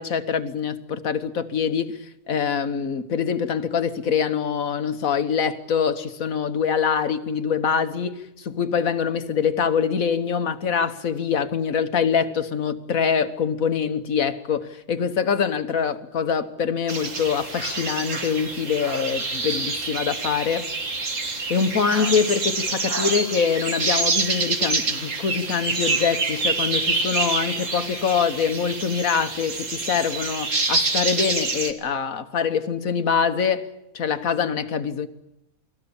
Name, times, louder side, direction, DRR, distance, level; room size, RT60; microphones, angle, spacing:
voice 1, 0.0-20.7 21.5-33.7 33.9-35.1, left 6 dB, 75° left, 1.7 m, -24 dB
sound 1, 16.9-31.7, right 3 dB, 65° right, 2.4 m, -27 dB
29.0 x 21.0 x 7.2 m
omnidirectional pair, 1.4 m